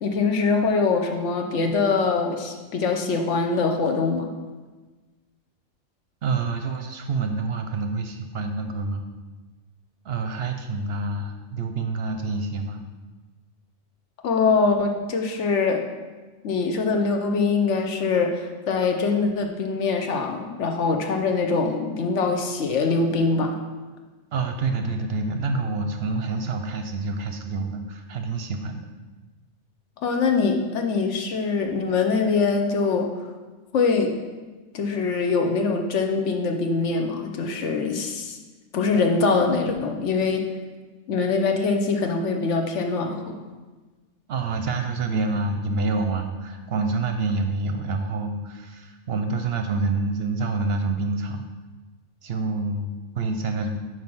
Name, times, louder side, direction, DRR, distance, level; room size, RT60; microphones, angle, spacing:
voice 1, 0.0-4.3 14.2-15.8 16.4-23.6 30.0-33.1 33.7-34.2 34.7-38.4 38.7-40.5 41.1-43.4, left 4 dB, 70° left, 4 dB, 1.1 m, -23 dB
voice 2, 6.2-9.0 10.0-12.8 24.3-28.9 44.3-51.4 52.2-53.8, right 3 dB, 60° right, 5 dB, 0.7 m, -27 dB
5.6 x 4.7 x 6.0 m, 1.3 s
omnidirectional pair, 1.3 m